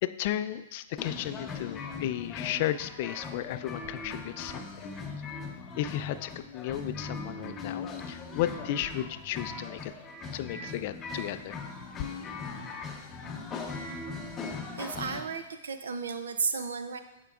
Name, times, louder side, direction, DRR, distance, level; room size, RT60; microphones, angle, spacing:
voice 1, 0.0-4.9 5.8-9.9 10.3-11.6, left 13 dB, 50° left, 12 dB, 0.3 m, -34 dB
sound 1, 1.0-15.2, left 4 dB, 20° left, 0.7 m, -39 dB
voice 2, 14.8-17.0, right 5 dB, 85° right, 9 dB, 0.5 m, -33 dB
8.9 x 4.5 x 2.4 m, 1.0 s
hypercardioid pair, 125°, 0 cm